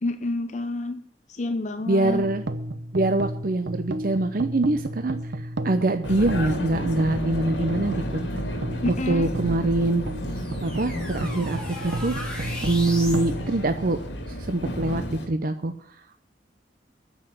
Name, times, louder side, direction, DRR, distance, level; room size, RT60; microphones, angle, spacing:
voice 1, 0.0-1.0 1.3-2.2 8.8-9.3, left 2 dB, 45° left, 9 dB, 0.7 m, -28 dB
voice 2, 1.9-2.4 2.9-8.2 8.5-8.6 9.1-10.0 10.6-12.1 12.6-14.0 14.3-15.7, right 2 dB, 55° right, 9 dB, 0.7 m, -24 dB
sound 1, 2.0-14.4, right 1 dB, 85° right, 0.9 m, -34 dB
Vehicle, 6.0-15.3, equal, 85° left, 2.3 m, -32 dB
sound 2, 9.4-13.3, left 1 dB, 5° left, 3.5 m, -38 dB
9.7 x 7.3 x 9.1 m, 0.65 s
head